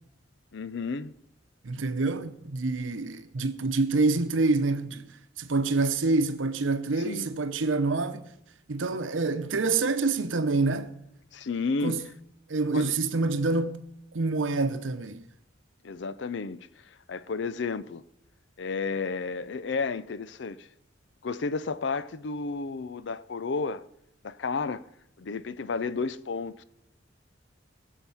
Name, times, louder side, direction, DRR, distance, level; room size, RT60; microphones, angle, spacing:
voice 1, 0.5-1.1 7.0-7.3 11.3-12.0 12.7-12.9 15.8-16.7 17.1-18.0 18.6-20.7 21.2-23.8 24.2-24.8 25.2-26.6, left 4 dB, 65° left, 0.5 m, -32 dB
voice 2, 1.6-5.0 5.4-8.2 8.7-10.9 11.8-12.0 12.5-13.8 14.1-15.3, right 3 dB, 85° right, 0.8 m, -26 dB
19.5 x 7.3 x 5.6 m
head